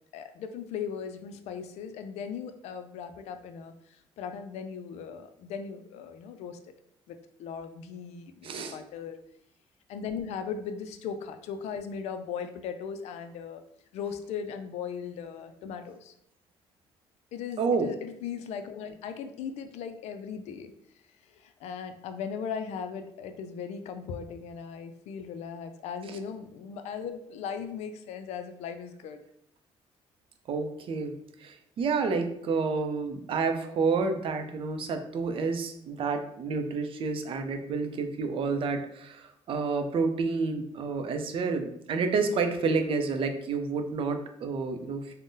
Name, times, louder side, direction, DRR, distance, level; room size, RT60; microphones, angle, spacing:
voice 1, 0.1-3.7 4.2-6.7 7.1-9.2 9.9-13.6 13.9-16.1 17.3-20.7 21.4-29.2, left 7 dB, 75° left, 8 dB, 0.4 m, -38 dB
voice 2, 8.4-8.8 17.6-17.9 26.1-26.2 30.5-31.1 31.4-45.1, right 4 dB, 55° right, 6 dB, 0.5 m, -29 dB
3.6 x 2.1 x 2.6 m, 0.75 s
cardioid pair, 90°, 11 cm